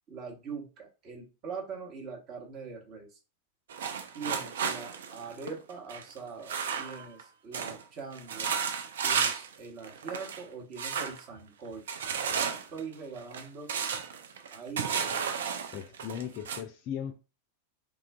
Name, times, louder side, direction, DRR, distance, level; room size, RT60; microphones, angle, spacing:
voice 1, 0.1-3.1 4.1-8.5 9.0-11.8 12.3-13.7 14.5-15.3, right 5 dB, 35° right, 1.0 m, -42 dB
sound 1, 3.7-7.2 7.5-7.8 8.1-9.5 9.8-10.4 10.8-11.2 11.9-16.6, right 7 dB, 60° right, 0.4 m, -33 dB
voice 2, 15.7-17.1, left 9 dB, 40° left, 0.3 m, -37 dB
3.3 x 2.4 x 2.3 m
figure-of-eight pair, 90°, 0 cm